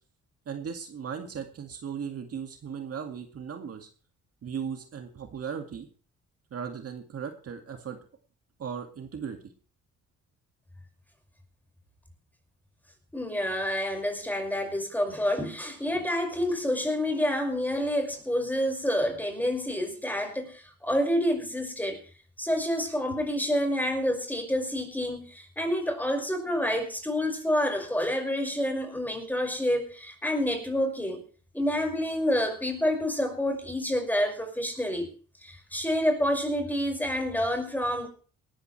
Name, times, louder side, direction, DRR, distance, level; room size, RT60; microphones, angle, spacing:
voice 1, 0.5-3.9 4.4-5.9 6.5-8.0 8.6-9.4, right 7 dB, 50° right, 4 dB, 2.1 m, -37 dB
voice 2, 13.1-22.0 22.4-31.2 31.5-35.1 35.4-38.1, equal, 5° left, 4 dB, 5.5 m, -28 dB
19.0 x 14.0 x 3.3 m, 0.40 s
cardioid pair, 90°, 30 cm